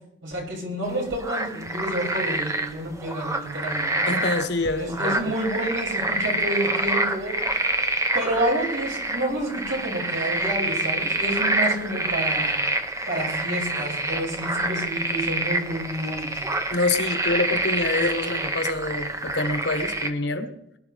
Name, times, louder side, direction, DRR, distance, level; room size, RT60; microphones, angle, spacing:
voice 1, 0.2-4.0 4.7-7.3 8.1-12.6 13.1-16.3, right 1 dB, 75° right, -3 dB, 6.8 m, -29 dB
sound 1, 0.9-20.1, right 2 dB, 15° right, 0.8 m, -27 dB
voice 2, 4.1-5.1 16.7-20.5, left 2 dB, 55° left, 7 dB, 1.2 m, -26 dB
22.0 x 12.0 x 3.5 m, 0.81 s
head